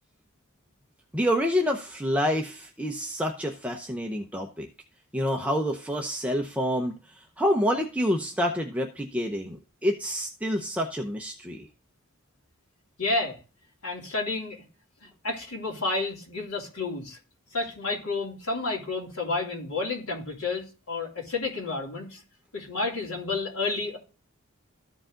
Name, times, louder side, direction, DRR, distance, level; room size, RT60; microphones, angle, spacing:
voice 1, 1.1-4.7 5.1-11.7, equal, 5° right, 2 dB, 0.7 m, -28 dB
voice 2, 13.0-13.4 13.8-14.6 15.0-17.2 17.5-22.2 22.5-24.0, left 3 dB, 80° left, -3 dB, 3.1 m, -30 dB
14.0 x 4.8 x 3.8 m, 0.34 s
head